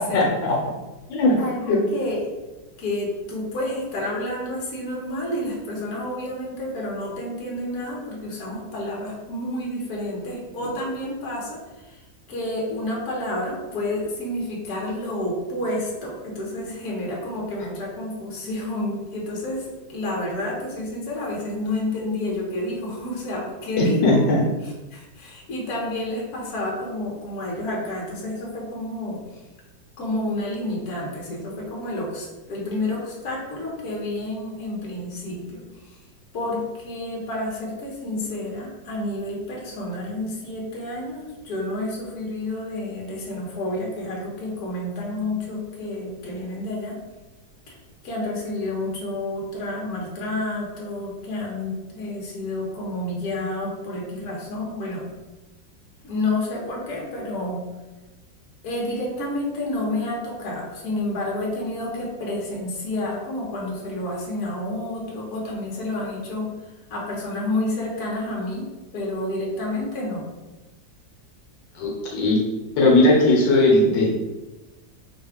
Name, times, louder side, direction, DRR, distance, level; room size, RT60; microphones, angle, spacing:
voice 1, 0.1-0.6 1.1-1.4 1.7-1.8 23.8-24.4 71.7-72.4 72.8-74.1, left 2 dB, 85° left, -2 dB, 1.5 m, -18 dB
voice 2, 1.4-2.2 2.8-12.0 12.3-24.2 24.9-29.4 30.0-36.0 36.3-47.0 47.7-47.8 48.0-55.1 56.0-57.7 58.6-68.7 68.9-70.2, left 1 dB, 60° left, -3 dB, 1.5 m, -30 dB
4.9 x 2.3 x 3.5 m, 1.1 s
omnidirectional pair, 1.9 m